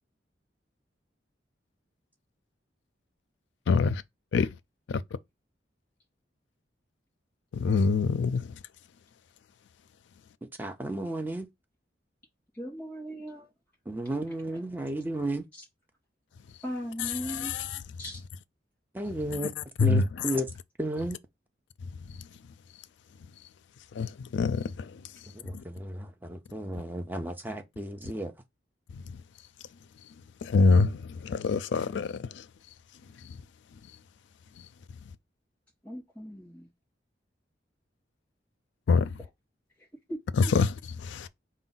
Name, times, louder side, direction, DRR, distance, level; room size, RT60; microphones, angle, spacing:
voice 1, 3.7-4.0 4.3-4.5 4.9-5.0 7.5-8.6 17.0-17.7 19.3-19.5 19.8-20.3 22.2-22.3 24.0-25.0 25.5-25.6 28.9-29.2 30.4-32.4 33.3-33.4 38.9-39.2 40.4-41.3, left 4 dB, 75° left, 0.4 m, -26 dB
voice 2, 10.6-11.5 13.9-15.4 18.9-19.5 19.8-20.5 20.8-21.2 25.3-28.3, right 1 dB, 10° right, 0.5 m, -33 dB
voice 3, 12.5-13.5 15.5-15.6 16.6-17.5 18.0-18.2 35.8-36.7 40.1-40.2, equal, 10° left, 2.4 m, -38 dB
4.5 x 2.2 x 3.9 m
head